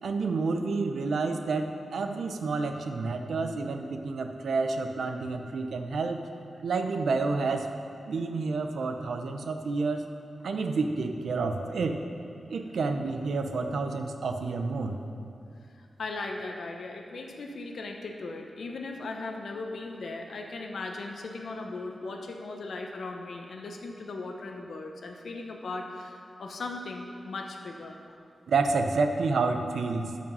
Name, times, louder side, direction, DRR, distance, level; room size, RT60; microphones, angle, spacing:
voice 1, 0.0-6.2 6.6-7.7 8.1-10.0 10.4-12.0 12.5-15.0 28.5-30.2, right 4 dB, 80° right, 5 dB, 0.7 m, -29 dB
voice 2, 15.8-28.0, left 3 dB, 65° left, 3 dB, 0.9 m, -38 dB
13.0 x 5.2 x 5.6 m, 2.5 s
wide cardioid pair, 170°, 0 cm